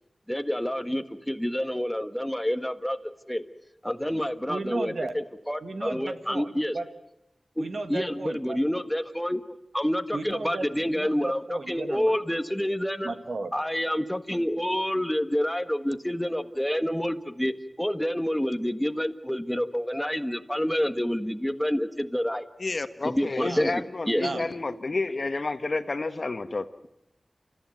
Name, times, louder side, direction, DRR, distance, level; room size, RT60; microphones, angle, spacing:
voice 1, 0.3-3.4 3.8-6.7 7.6-13.1 13.5-22.5 23.0-24.3, equal, 10° left, 1.5 m, -28 dB
voice 2, 4.5-5.1 5.6-6.9 7.6-8.6 10.1-12.2 13.0-13.5 23.4-23.7 24.2-24.5, right 3 dB, 80° right, 1.8 m, -34 dB
voice 3, 22.6-26.9, left 3 dB, 60° left, 1.4 m, -30 dB
29.0 x 14.5 x 9.3 m
cardioid pair, 45°, 0 cm